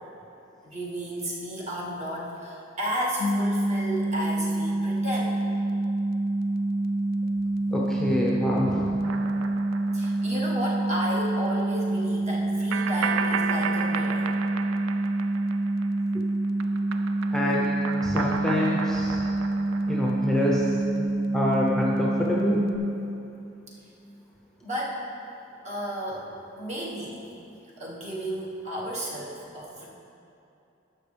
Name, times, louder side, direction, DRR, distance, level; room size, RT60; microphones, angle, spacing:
voice 1, 0.6-5.3 7.6-7.8 9.9-14.4 24.6-25.1 25.6-27.2 27.8-29.9, equal, 35° right, -4 dB, 1.5 m, -33 dB
sound 1, 3.2-22.8, right 2 dB, 50° left, 0.5 m, -27 dB
voice 2, 7.7-8.9 16.1-16.2 17.3-19.2 19.9-20.7 21.3-22.6, left 1 dB, ahead, -4 dB, 0.7 m, -26 dB
sound 2, 9.0-10.7 11.0-11.1 12.7-16.2 16.4-20.7, right 6 dB, 75° right, 0.4 m, -34 dB
11.5 x 6.7 x 3.4 m, 2.8 s
head